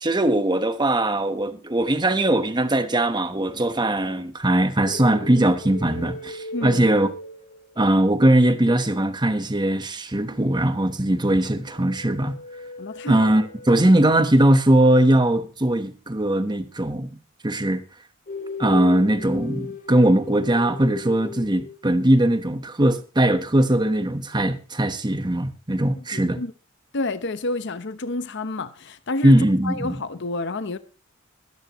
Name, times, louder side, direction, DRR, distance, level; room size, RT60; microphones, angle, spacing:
voice 1, 0.0-7.1 7.8-12.4 13.1-17.8 18.6-26.4 29.2-30.0, right 1 dB, 20° right, 1.1 m, -20 dB
sound 1, 4.9-8.0 11.6-14.2 18.3-22.1, left 3 dB, 40° left, 1.0 m, -37 dB
voice 2, 6.5-6.9 12.8-13.3 25.9-26.5 26.9-30.8, left 2 dB, 60° left, 0.9 m, -30 dB
21.5 x 10.0 x 3.0 m
head